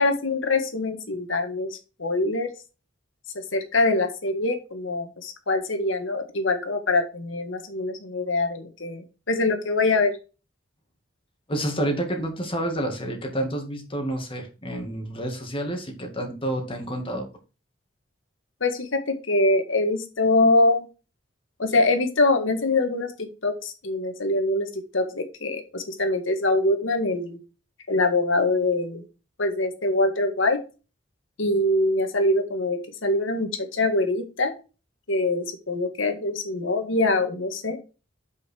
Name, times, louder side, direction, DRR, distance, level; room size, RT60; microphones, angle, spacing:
voice 1, 0.0-2.5 3.3-10.1 18.6-20.9 21.6-27.4 27.9-29.0 29.4-30.6 31.4-34.5 35.1-37.8, left 2 dB, 90° left, 6 dB, 1.7 m, -24 dB
voice 2, 11.5-17.3, right 1 dB, 30° left, 3 dB, 2.2 m, -29 dB
8.0 x 5.7 x 4.5 m, 0.32 s
head